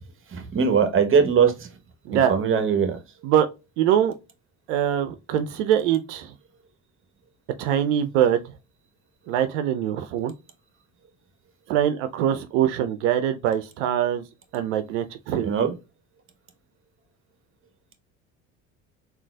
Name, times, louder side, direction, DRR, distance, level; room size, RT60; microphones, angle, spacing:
voice 1, 0.3-1.7 2.1-3.0 15.4-15.7, right 6 dB, 35° right, 0.9 m, -21 dB
voice 2, 3.8-4.1 4.7-6.3 7.6-8.5 9.3-10.3 11.7-14.2 14.5-15.5, right 10 dB, 80° right, 0.5 m, -23 dB
3.8 x 2.4 x 2.2 m
hypercardioid pair, 75°, 36 cm